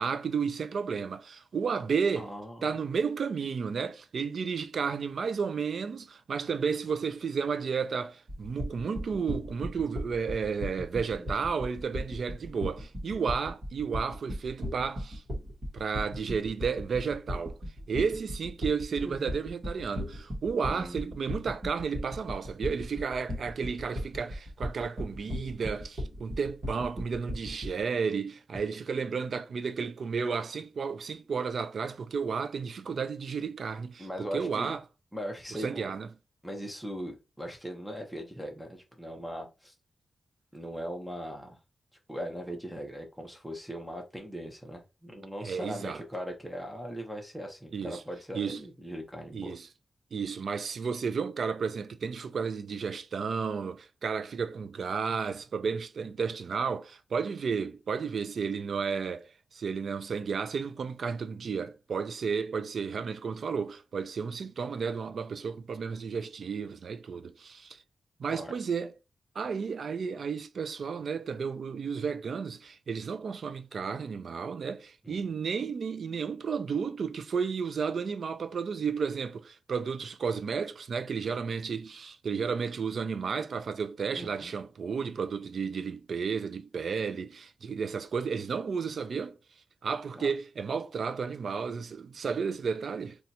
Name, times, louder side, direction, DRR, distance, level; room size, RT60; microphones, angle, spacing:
voice 1, 0.0-2.3 2.6-15.2 15.7-17.6 17.9-34.8 35.5-36.1 45.4-46.0 47.7-48.0 48.3-48.6 49.3-49.7 50.1-67.8 68.2-68.9 69.4-89.4 89.8-93.2, right 5 dB, 60° right, 0.3 m, -32 dB
voice 2, 2.2-2.7 11.2-11.3 19.0-19.4 20.7-21.2 34.0-34.8 35.1-35.9 36.4-39.7 40.5-41.6 42.1-49.6 68.3-68.5 75.0-75.2 84.2-84.5 90.1-90.3, equal, ahead, 0.7 m, -39 dB
sound 1, 8.3-27.8, equal, 35° right, 1.2 m, -36 dB
2.7 x 2.3 x 4.0 m
wide cardioid pair, 165°, 0 cm